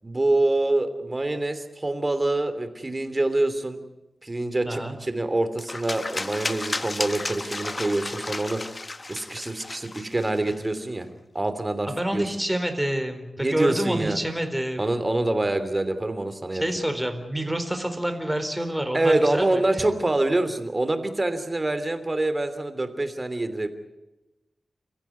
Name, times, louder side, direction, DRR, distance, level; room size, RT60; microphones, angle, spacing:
voice 1, 0.0-3.8 4.2-8.8 9.1-11.1 11.3-12.3 13.4-14.2 14.8-16.6 18.9-23.7, right 2 dB, 25° right, 10 dB, 3.0 m, -25 dB
sound 1, 5.6-10.8, left 2 dB, 35° left, 1.0 m, -33 dB
voice 2, 11.9-14.9 16.5-19.8, right 1 dB, 5° right, 7 dB, 4.2 m, -28 dB
29.0 x 15.0 x 9.6 m, 1.0 s
wide cardioid pair, 85°, 0 cm